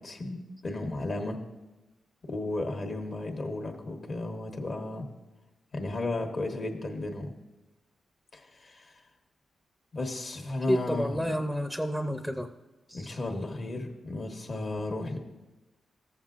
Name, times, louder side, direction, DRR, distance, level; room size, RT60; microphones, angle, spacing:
voice 1, 0.0-1.4 2.3-5.1 5.7-7.3 8.3-9.0 9.9-11.3 12.9-15.2, left 2 dB, 55° left, 3 dB, 1.2 m, -34 dB
voice 2, 10.7-12.5 12.9-13.2, equal, 5° left, 6 dB, 0.5 m, -30 dB
14.0 x 7.2 x 2.5 m, 1.1 s
cardioid pair, 70°, 0 cm